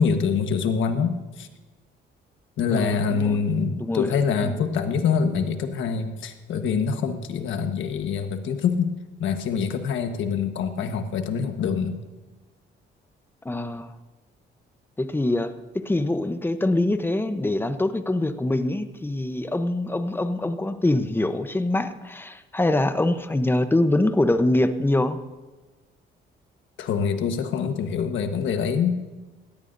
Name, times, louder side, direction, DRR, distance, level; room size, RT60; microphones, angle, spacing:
voice 1, 0.0-1.5 2.6-8.9 9.2-12.0 26.8-29.0, left 6 dB, 80° left, 7 dB, 1.3 m, -25 dB
voice 2, 2.7-3.4 3.8-4.1 4.4-4.6 13.4-13.9 15.0-25.2, left 1 dB, 10° left, 10 dB, 0.9 m, -24 dB
19.0 x 15.0 x 2.7 m, 1.2 s
cardioid pair, 90°, 20 cm